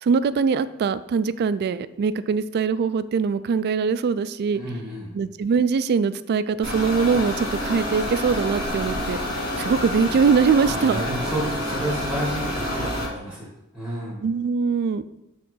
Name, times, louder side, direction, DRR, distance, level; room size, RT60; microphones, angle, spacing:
voice 1, 0.0-4.6 5.1-9.2 9.6-11.0 14.2-15.0, right 5 dB, 50° right, 14 dB, 0.3 m, -22 dB
voice 2, 4.5-5.1 10.6-14.2, equal, 5° right, -6 dB, 2.0 m, -31 dB
sound 1, 6.6-13.1, left 1 dB, 45° left, 1.9 m, -28 dB
6.9 x 3.7 x 5.4 m, 0.93 s
head